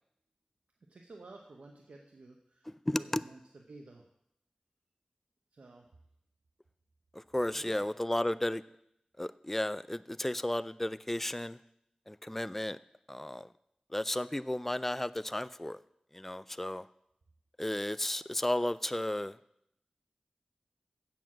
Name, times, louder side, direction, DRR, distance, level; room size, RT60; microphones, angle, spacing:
voice 1, 0.9-4.0 5.5-5.9 7.5-7.8, right 2 dB, 85° right, 2 dB, 0.9 m, -52 dB
voice 2, 2.9-3.2 7.3-8.6 9.2-11.6 12.1-12.8 13.1-13.4 13.9-15.8 16.1-16.8 17.6-19.4, left 1 dB, 10° left, 16 dB, 0.3 m, -33 dB
7.8 x 7.0 x 7.4 m, 0.77 s
wide cardioid pair, 60°, 2 cm